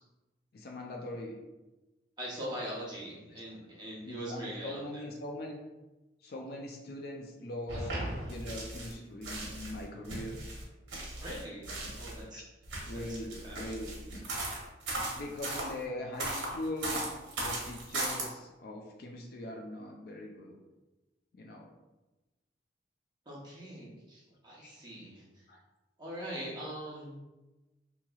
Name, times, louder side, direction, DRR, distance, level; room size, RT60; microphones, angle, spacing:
voice 1, 0.5-1.4 4.1-5.6 6.2-10.4 12.3-12.4 12.8-14.0 15.1-17.1 17.4-20.6 21.3-21.7 24.6-24.8 25.5-25.6, left 1 dB, 55° left, 1 dB, 0.4 m, -41 dB
voice 2, 2.2-5.1 11.2-12.4 12.9-13.6 23.3-25.5 26.0-27.2, equal, 25° right, -6 dB, 0.8 m, -42 dB
sound 1, 7.7-8.9 9.2-12.2 12.6-15.7 16.2-18.2, right 2 dB, 70° right, 0.8 m, -37 dB
3.0 x 2.9 x 2.3 m, 1.1 s
head